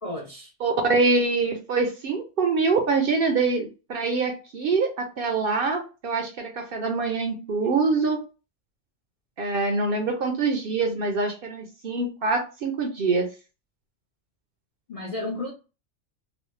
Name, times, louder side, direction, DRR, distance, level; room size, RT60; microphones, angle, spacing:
voice 1, 0.0-0.5 14.9-15.5, left 2 dB, 50° left, 0.4 m, -32 dB
voice 2, 0.6-8.2 9.4-13.3, right 4 dB, 60° right, 0.7 m, -24 dB
3.0 x 2.0 x 3.1 m
omnidirectional pair, 1.3 m